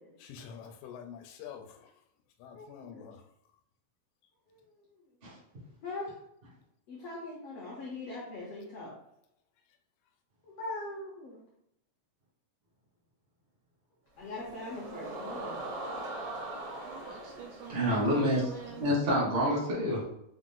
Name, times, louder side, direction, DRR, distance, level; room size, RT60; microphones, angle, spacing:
voice 1, 0.2-1.6 2.4-3.2, left 8 dB, 90° left, 4 dB, 2.3 m, -46 dB
voice 2, 2.6-3.0 5.8-6.1 6.9-8.9 10.6-11.4 14.2-15.6, left 2 dB, 75° left, -4 dB, 1.4 m, -41 dB
sound 1, 14.2-19.0, right 2 dB, 70° right, 1.2 m, -41 dB
voice 3, 16.8-18.8, right 5 dB, 85° right, 2 dB, 1.7 m, -45 dB
voice 4, 17.7-18.4 18.8-20.0, equal, 40° right, -5 dB, 0.7 m, -27 dB
5.3 x 2.5 x 3.6 m, 0.77 s
omnidirectional pair, 3.9 m